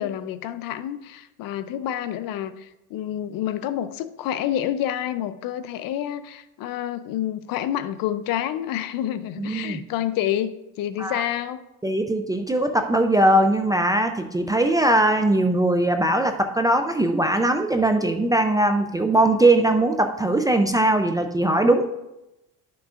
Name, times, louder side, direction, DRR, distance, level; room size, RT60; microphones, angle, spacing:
voice 1, 0.0-11.6, left 11 dB, 65° left, 13 dB, 0.6 m, -28 dB
voice 2, 9.4-9.8 11.0-11.2 11.8-21.9, right 1 dB, 10° right, 5 dB, 0.3 m, -20 dB
11.0 x 6.1 x 2.4 m, 0.93 s
cardioid pair, 125°, 37 cm